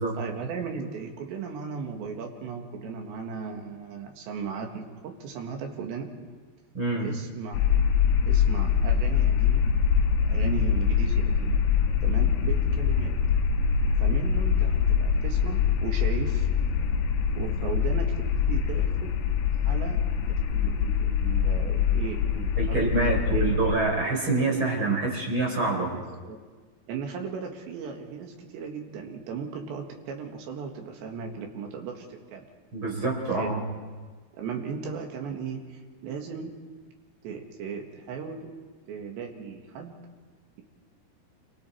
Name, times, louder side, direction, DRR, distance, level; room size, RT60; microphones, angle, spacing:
voice 1, 0.1-6.1 7.0-7.6 8.3-9.7 10.2-11.6 12.0-13.2 14.0-16.5 17.4-19.2 19.5-20.0 20.3-22.9 23.3-23.6 24.4-25.2 25.9-26.4 26.9-32.5 33.4-33.5 34.4-36.5 37.2-38.5 38.9-40.0, right 6 dB, 85° right, 2 dB, 4.1 m, -37 dB
voice 2, 6.7-7.1 10.4-10.6 22.6-25.9 32.7-33.6, right 3 dB, 30° right, -1 dB, 5.0 m, -26 dB
sound 1, 7.5-23.7, left 7 dB, 75° left, 3.1 m, -24 dB
28.5 x 24.5 x 4.6 m, 1.4 s
omnidirectional pair, 4.9 m